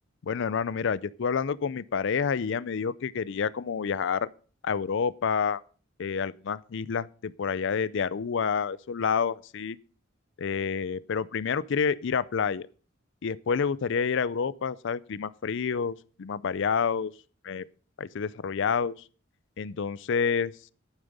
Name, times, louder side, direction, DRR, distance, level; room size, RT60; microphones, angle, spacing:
voice 1, 0.2-4.3 4.6-5.6 6.0-9.8 10.4-12.7 13.2-17.1 17.4-17.6 18.0-18.9 19.6-20.5, left 6 dB, 65° left, 0.5 m, -28 dB
11.5 x 8.9 x 5.3 m
head